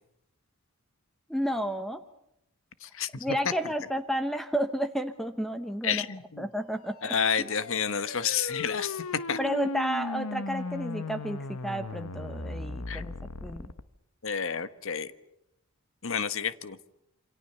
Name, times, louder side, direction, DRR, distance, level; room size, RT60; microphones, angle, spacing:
voice 1, 1.3-2.0 3.1-6.1 6.4-7.1 9.4-13.1 13.4-13.7, equal, ahead, 9 dB, 1.0 m, -31 dB
voice 2, 2.8-3.4 5.8-6.5 7.0-9.4 12.9-13.0 14.2-15.1 16.0-16.8, left 7 dB, 65° left, 13 dB, 1.3 m, -30 dB
sound 1, 6.9-13.8, left 3 dB, 85° left, 1.1 m, -37 dB
28.0 x 26.0 x 6.9 m, 0.81 s
head